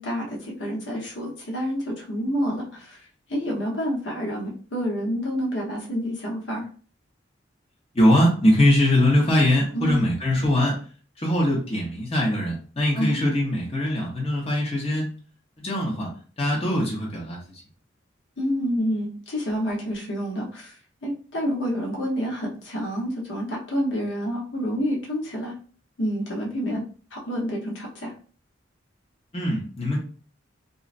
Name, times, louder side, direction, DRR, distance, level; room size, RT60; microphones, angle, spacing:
voice 1, 0.0-3.0 3.3-6.7 9.7-10.0 12.9-13.3 18.4-20.7 21.0-25.5 26.0-26.8 27.1-28.1, equal, 70° left, -2 dB, 0.9 m, -28 dB
voice 2, 7.9-10.8 11.2-15.1 15.6-16.1 16.4-17.6 29.3-30.0, left 1 dB, 30° left, -3 dB, 0.8 m, -22 dB
3.8 x 2.1 x 2.5 m, 0.41 s
head